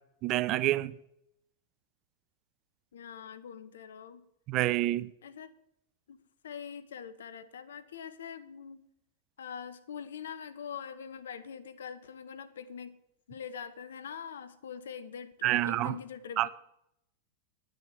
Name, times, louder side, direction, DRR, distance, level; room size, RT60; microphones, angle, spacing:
voice 1, 0.2-1.0 4.5-5.1 15.4-15.9 16.4-16.5, right 16 dB, 35° right, 0.5 m, -27 dB
voice 2, 2.9-4.2 5.2-5.5 6.1-6.2 6.4-8.8 9.4-13.0 13.3-16.5, left 7 dB, 65° left, 1.0 m, -43 dB
10.5 x 6.4 x 8.3 m
figure-of-eight pair, 90°, 0 cm